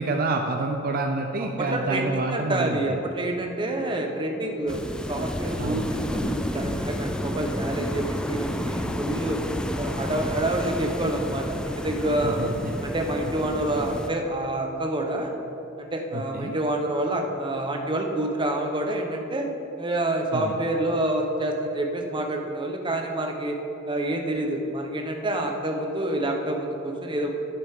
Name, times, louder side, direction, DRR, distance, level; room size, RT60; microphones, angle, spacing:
voice 1, 0.0-3.0 5.6-5.9 12.2-12.8 16.1-16.5 20.3-20.6, right 2 dB, 45° right, 4 dB, 0.5 m, -28 dB
voice 2, 1.6-9.4 9.8-12.5 12.8-15.3 15.8-19.5 19.8-23.6 23.9-27.3, right 1 dB, 25° right, 2 dB, 1.0 m, -28 dB
sound 1, 4.7-14.1, equal, 5° left, 0.4 m, -31 dB
11.0 x 10.0 x 3.6 m, 2.9 s
head